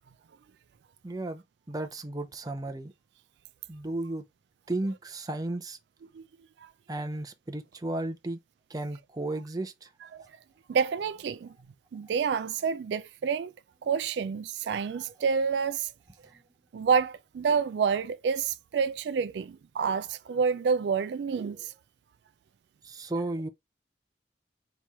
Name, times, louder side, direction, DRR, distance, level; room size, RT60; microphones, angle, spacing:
voice 1, 1.0-2.9 3.7-4.2 4.7-5.8 6.9-8.4 8.7-9.9 22.8-23.5, right 2 dB, 20° right, 0.6 m, -34 dB
voice 2, 10.7-11.5 11.9-13.5 13.8-15.9 16.7-21.7, right 6 dB, 75° right, 0.3 m, -28 dB
4.3 x 3.0 x 3.5 m
head